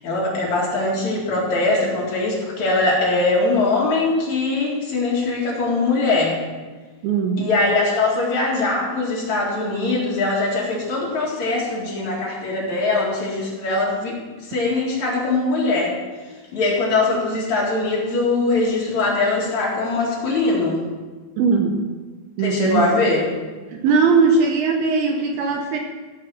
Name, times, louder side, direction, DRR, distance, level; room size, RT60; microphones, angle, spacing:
voice 1, 0.0-6.4 7.4-15.9 16.5-20.8 22.4-23.3, left 3 dB, 50° left, -4 dB, 2.6 m, -21 dB
voice 2, 7.0-7.5 21.4-21.8 22.4-23.0 23.7-25.8, right 4 dB, 85° right, 2 dB, 2.3 m, -19 dB
15.0 x 5.9 x 6.3 m, 1.4 s
omnidirectional pair, 5.6 m